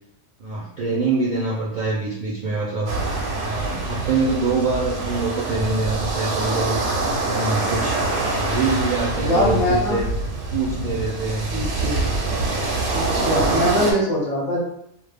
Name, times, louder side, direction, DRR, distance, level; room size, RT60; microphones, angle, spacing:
voice 1, 0.4-2.9 3.4-6.8 7.2-8.0 8.4-10.1 10.5-11.5, right 3 dB, 60° right, -5 dB, 0.5 m, -24 dB
sound 1, 2.9-13.9, right 2 dB, 85° right, 0.9 m, -25 dB
voice 2, 9.2-10.0 11.5-12.0 12.9-14.6, equal, 35° left, -7 dB, 0.8 m, -22 dB
2.2 x 2.0 x 3.3 m, 0.75 s
omnidirectional pair, 1.2 m